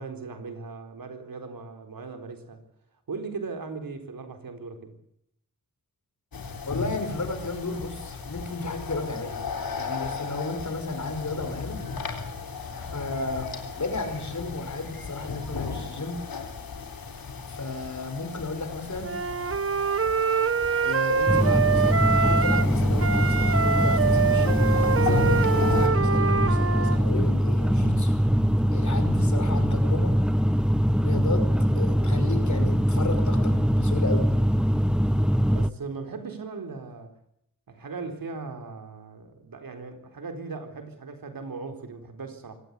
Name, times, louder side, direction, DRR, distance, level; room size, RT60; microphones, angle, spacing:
voice 1, 0.0-2.6 3.1-4.9 35.5-37.1 37.7-42.6, right 4 dB, 75° right, 6 dB, 4.2 m, -38 dB
sound 1, 6.3-25.9, left 4 dB, 90° left, 3.7 m, -35 dB
voice 2, 6.7-9.5 9.8-11.8 12.8-13.5 13.8-16.2 17.5-19.1 20.8-28.2 28.7-30.1 31.0-34.3, left 3 dB, 55° left, 8 dB, 5.7 m, -33 dB
Wind instrument woodwind instrument, 19.0-22.7 23.0-27.0, right 5 dB, 40° right, 1.0 m, -25 dB
sound 2, 21.3-35.7, equal, ahead, 0.9 m, -22 dB
24.0 x 18.0 x 8.4 m, 0.75 s
wide cardioid pair, 80°, 34 cm